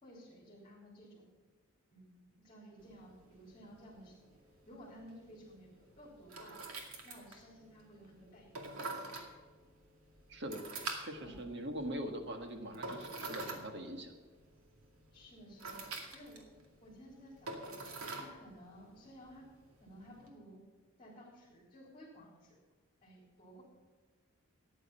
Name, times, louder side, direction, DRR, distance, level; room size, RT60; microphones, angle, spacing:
voice 1, 0.0-1.3 1.9-4.4 4.7-6.6 7.0-8.5 11.2-11.4 15.1-16.5 16.8-17.7 18.1-19.5 19.8-20.6 21.0-22.6 23.0-23.6, equal, 25° left, -6 dB, 3.6 m, -55 dB
sound 1, 2.8-20.3, right 3 dB, 85° right, 2.3 m, -48 dB
voice 2, 10.3-10.7 11.0-14.1, equal, 55° right, 5 dB, 1.7 m, -42 dB
14.5 x 9.9 x 5.5 m, 1.4 s
head